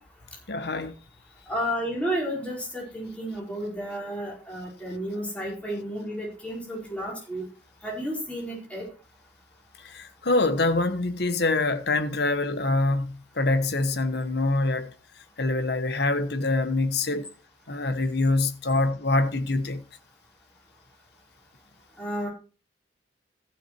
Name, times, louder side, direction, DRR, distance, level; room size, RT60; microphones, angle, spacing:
voice 1, 0.5-0.9 9.8-14.9 15.4-17.3 17.7-19.8, left 2 dB, 65° left, 1.2 m, -25 dB
voice 2, 1.5-7.4 7.8-8.8 22.0-22.3, equal, 5° left, 4.7 m, -32 dB
14.5 x 6.5 x 4.6 m
head